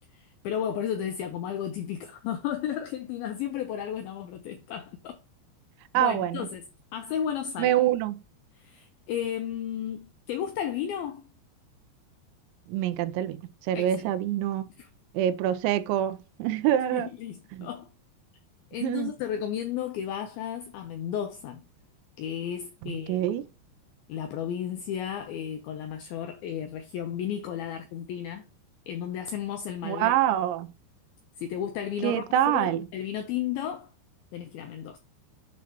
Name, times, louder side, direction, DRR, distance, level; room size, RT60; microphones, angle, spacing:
voice 1, 0.1-5.2 5.9-6.6 6.9-7.8 8.6-11.2 13.7-13.9 14.8-14.9 16.9-17.9 18.7-21.7 22.2-23.3 24.1-28.4 28.9-30.1 31.4-33.9 34.3-35.0, left 9 dB, 90° left, 2.1 m, -33 dB
voice 2, 5.9-6.5 7.6-8.2 12.7-13.4 13.7-14.7 15.1-17.1 17.5-17.7 18.8-19.1 22.8-23.4 29.8-30.7 32.0-32.9, right 12 dB, 90° right, 3.0 m, -26 dB
8.4 x 5.1 x 3.0 m
omnidirectional pair, 5.1 m